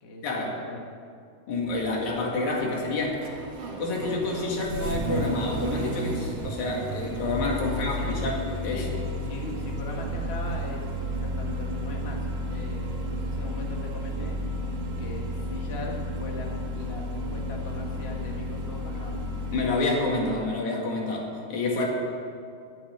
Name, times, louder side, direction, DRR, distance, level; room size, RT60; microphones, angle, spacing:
voice 1, 0.0-0.8 3.9-4.1 7.7-8.2 8.7-8.9 9.2-14.4 15.0-19.2 21.8-21.9, left 2 dB, 30° left, -1 dB, 1.1 m, -39 dB
voice 2, 1.5-3.2 3.8-8.4 8.6-8.9 19.5-21.9, left 2 dB, 65° left, -1 dB, 3.4 m, -28 dB
Engine starting, 1.5-19.9, equal, 55° right, 2.3 m, -32 dB
11.0 x 8.6 x 10.0 m, 2.3 s
omnidirectional pair, 3.6 m